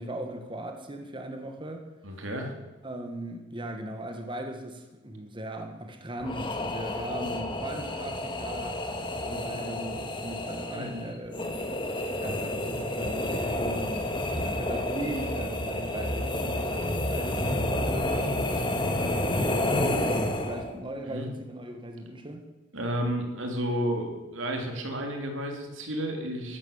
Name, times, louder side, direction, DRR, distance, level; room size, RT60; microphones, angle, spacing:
voice 1, 0.0-1.9 2.8-11.6 12.2-22.5, right 1 dB, 25° right, 1.5 m, -38 dB
voice 2, 2.0-2.5 10.7-11.1 21.1-21.3 22.7-26.6, equal, 85° right, 3.2 m, -32 dB
sound 1, 6.2-20.8, left 1 dB, 25° left, 1.8 m, -30 dB
14.5 x 12.0 x 7.3 m
head